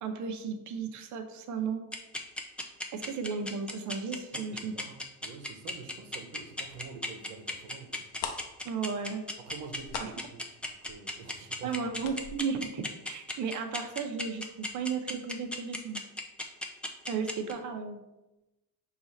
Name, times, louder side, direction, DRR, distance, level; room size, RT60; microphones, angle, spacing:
voice 1, 0.0-1.8 2.9-4.7 8.6-9.3 10.0-10.1 11.6-16.0 17.1-18.0, right 5 dB, 40° right, 6 dB, 0.6 m, -34 dB
sound 1, 1.9-17.5, left 1 dB, 5° left, 0.3 m, -35 dB
voice 2, 4.3-8.1 9.5-11.8, right 5 dB, 80° right, 5 dB, 0.8 m, -47 dB
sound 2, 7.9-8.0 8.1-13.7 14.0-14.1 14.5-14.7 15.1-15.2, left 6 dB, 65° left, 0.7 m, -42 dB
4.7 x 2.4 x 4.0 m, 0.97 s
hypercardioid pair, 75°, 47 cm